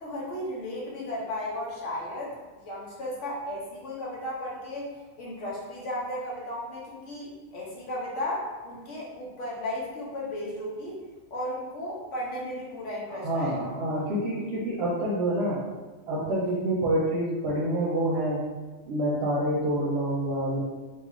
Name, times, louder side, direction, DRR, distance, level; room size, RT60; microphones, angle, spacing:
voice 1, 0.0-4.9 5.2-11.0 11.3-13.5, left 1 dB, 80° left, -5 dB, 1.1 m, -35 dB
voice 2, 13.2-15.6 16.1-18.4 18.9-20.6, right 1 dB, 65° right, -5 dB, 0.8 m, -27 dB
2.8 x 2.3 x 3.0 m, 1.3 s
omnidirectional pair, 1.2 m